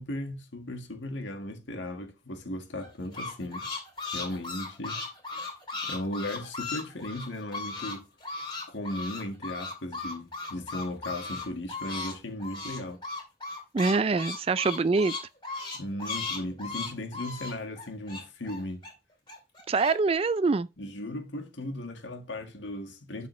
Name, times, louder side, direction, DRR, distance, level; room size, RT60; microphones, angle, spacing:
voice 1, 0.0-3.7 4.1-5.0 5.8-8.1 8.7-13.0 15.7-18.9 20.8-23.3, left 1 dB, 80° left, 1.7 m, -36 dB
sound 1, 2.8-8.0 8.2-12.1 12.4-18.9 19.3-19.9, left 3 dB, 25° left, 2.7 m, -36 dB
voice 2, 13.7-15.2 19.7-20.7, right 4 dB, 30° right, 0.3 m, -24 dB
12.0 x 4.1 x 3.1 m
head